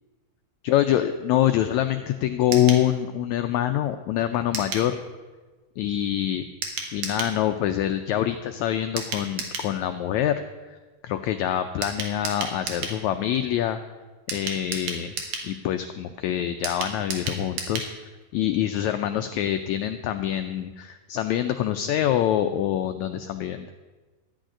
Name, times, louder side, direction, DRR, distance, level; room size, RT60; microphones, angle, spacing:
voice 1, 0.6-5.0 5.8-6.4 6.9-10.4 11.0-13.8 14.3-15.1 15.4-17.9 18.3-23.7, left 11 dB, 85° left, 8 dB, 1.6 m, -25 dB
sound 1, 2.5-2.9 4.5-4.9 6.6-7.4 9.0-9.7 11.8-13.0 14.3-15.5 16.6-17.9 18.2-18.3 18.6-18.7, right 5 dB, 80° right, 3.6 m, -32 dB
14.0 x 6.4 x 10.0 m, 1.3 s
omnidirectional pair, 4.0 m